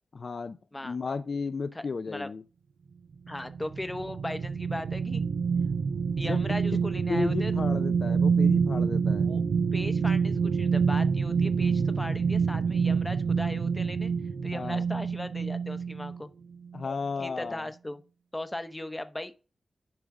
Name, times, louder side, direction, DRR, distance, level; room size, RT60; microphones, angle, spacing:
voice 1, 0.2-0.6 0.8-2.4 6.2-6.4 6.7-6.8 7.1-9.3 14.5-14.8 16.7-17.7, left 4 dB, 55° left, 0.4 m, -33 dB
voice 2, 1.7-2.3 3.3-5.2 6.2-7.5 9.3-9.4 9.7-14.1 14.4-16.3 17.2-18.0 18.3-19.3, left 1 dB, 15° left, 0.7 m, -38 dB
sound 1, 3.3-16.2 16.7-16.8, right 5 dB, 80° right, 0.4 m, -27 dB
10.5 x 3.8 x 4.7 m
wide cardioid pair, 90°, 0 cm